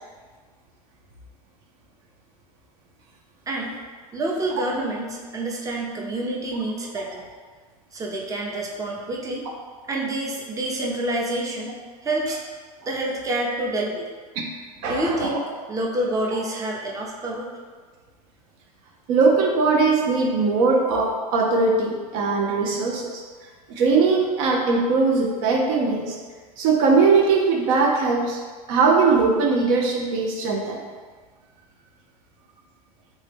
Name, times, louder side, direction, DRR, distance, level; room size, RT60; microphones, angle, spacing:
voice 1, 3.5-3.8 4.1-7.2 7.9-9.5 9.9-11.7 12.0-12.4 12.9-14.1 14.9-15.4 15.7-17.5, right 1 dB, 15° right, -2 dB, 0.6 m, -27 dB
voice 2, 14.8-15.3 17.2-17.3 19.1-23.2 23.7-26.2 26.6-28.4 28.7-30.8, right 4 dB, 65° right, 1 dB, 0.6 m, -20 dB
3.5 x 2.7 x 3.4 m, 1.5 s
hypercardioid pair, 90°, 19 cm